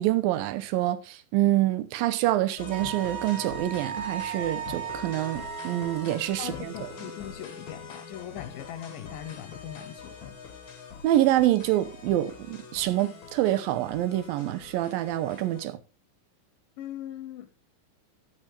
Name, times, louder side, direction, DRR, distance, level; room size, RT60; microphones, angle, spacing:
voice 1, 0.0-6.7 11.0-15.8, right 14 dB, 90° right, 2.5 m, -26 dB
sound 1, 2.6-15.7, left 5 dB, 55° left, 1.4 m, -44 dB
Wind instrument woodwind instrument, 2.7-6.2, right 9 dB, 70° right, 2.0 m, -36 dB
voice 2, 6.4-10.4 16.8-17.5, left 10 dB, 85° left, 2.4 m, -40 dB
13.5 x 7.6 x 3.3 m
omnidirectional pair, 4.0 m